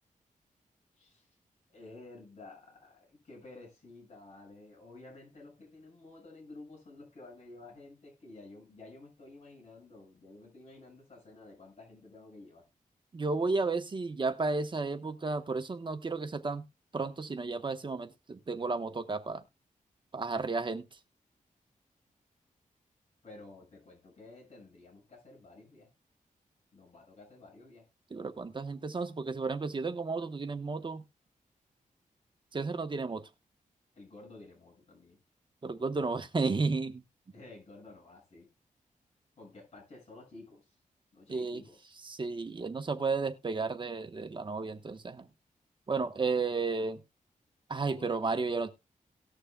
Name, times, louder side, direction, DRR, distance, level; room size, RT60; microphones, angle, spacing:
voice 1, 1.0-1.3 1.7-12.7 23.2-25.9 26.7-27.9 34.0-35.2 37.3-38.5 39.4-40.7 41.1-42.0 47.9-48.2, left 2 dB, 50° left, 7.1 m, -52 dB
voice 2, 13.1-16.6 16.9-19.4 20.1-20.9 28.1-31.0 32.5-33.2 35.6-37.0 41.3-41.6 42.0-45.2 45.9-47.0 47.7-48.7, right 4 dB, 35° right, 1.2 m, -33 dB
19.0 x 6.5 x 2.3 m
wide cardioid pair, 105°, 14 cm